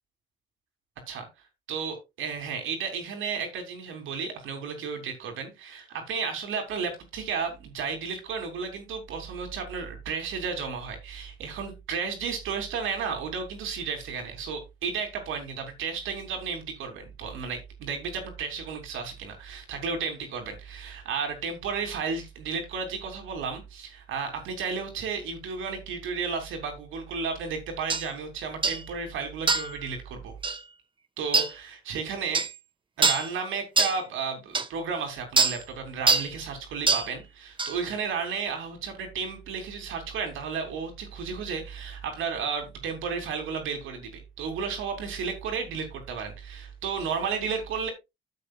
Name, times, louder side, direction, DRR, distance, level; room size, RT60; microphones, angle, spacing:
voice 1, 1.7-30.3 31.2-32.4 33.0-47.9, right 5 dB, 85° right, 3.1 m, -33 dB
sound 1, 27.9-28.0 28.6-28.8 29.5-29.8 30.4-30.6 31.3-31.5 32.3-32.5 33.0-33.3 33.8-34.0 34.5-34.7 35.4-35.6 36.1-36.3 36.9-37.1 37.6-37.7, right 4 dB, 25° right, 1.0 m, -23 dB
12.5 x 7.6 x 2.4 m
cardioid pair, 90°, 20 cm